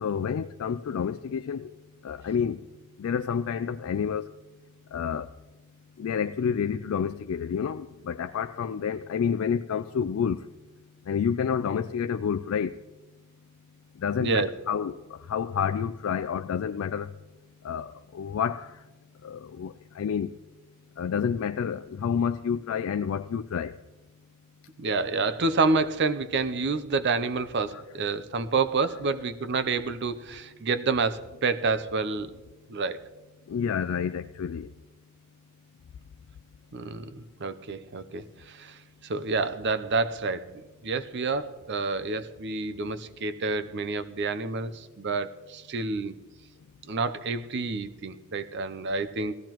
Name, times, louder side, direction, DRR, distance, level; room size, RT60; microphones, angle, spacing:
voice 1, 0.0-1.7 2.0-2.6 3.0-4.3 4.9-5.3 6.0-10.4 11.1-12.7 14.0-14.9 15.3-17.1 17.6-18.7 19.2-20.3 21.0-23.7 27.7-27.8 33.5-34.7, left 7 dB, 75° left, 0.3 m, -29 dB
voice 2, 14.2-14.5 24.8-32.3 32.7-33.0 36.7-40.5 40.8-46.2 46.9-49.3, right 4 dB, 55° right, 0.6 m, -28 dB
17.5 x 15.0 x 3.0 m
head